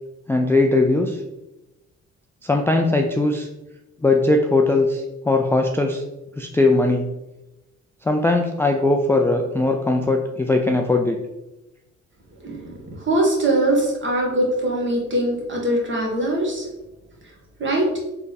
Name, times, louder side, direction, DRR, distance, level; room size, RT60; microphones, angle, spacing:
voice 1, 0.3-1.2 2.4-3.5 4.0-6.0 6.4-7.1 8.0-11.2, left 2 dB, 10° left, 2 dB, 0.3 m, -19 dB
voice 2, 12.4-16.6 17.6-18.0, right 1 dB, 40° right, -1 dB, 1.4 m, -22 dB
3.5 x 3.3 x 4.0 m, 0.98 s
cardioid pair, 90°, 30 cm